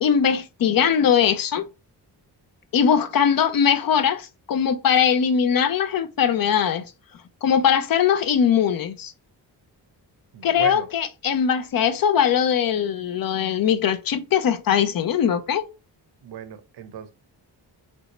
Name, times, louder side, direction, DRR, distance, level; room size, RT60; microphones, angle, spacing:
voice 1, 0.0-1.7 2.7-6.9 7.4-9.1 10.4-15.6, left 8 dB, 55° left, 0.5 m, -21 dB
voice 2, 10.3-10.9 16.2-17.1, right 8 dB, 65° right, 0.6 m, -35 dB
3.3 x 2.6 x 2.9 m
cardioid pair, 95°, 43 cm